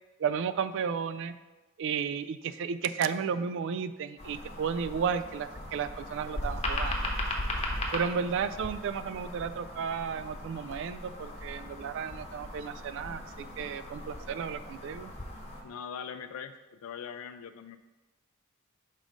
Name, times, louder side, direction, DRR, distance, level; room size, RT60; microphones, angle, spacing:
voice 1, 0.2-1.3 1.8-7.1 7.9-15.1, right 6 dB, 60° right, 13 dB, 0.3 m, -33 dB
sound 1, 4.2-15.6, left 1 dB, 30° left, 0.9 m, -38 dB
voice 2, 15.6-17.8, left 7 dB, 70° left, 10 dB, 0.3 m, -41 dB
5.2 x 3.7 x 5.1 m, 1.2 s
head